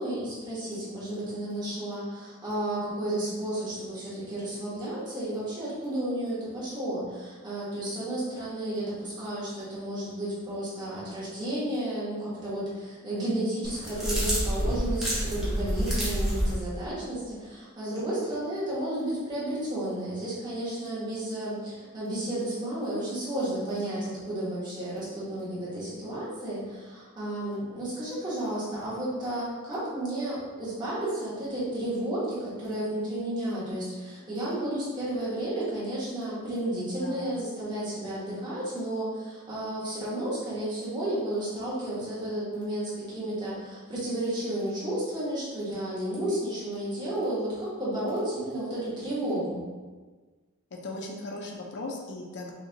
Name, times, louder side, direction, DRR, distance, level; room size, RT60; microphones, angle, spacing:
voice 1, 0.0-49.6, right 1 dB, 20° right, -9 dB, 1.3 m, -32 dB
sound 1, 13.6-16.5, equal, ahead, 1.0 m, -28 dB
voice 2, 50.7-52.5, left 2 dB, 55° left, 1 dB, 0.6 m, -38 dB
5.7 x 2.4 x 2.8 m, 1.4 s
head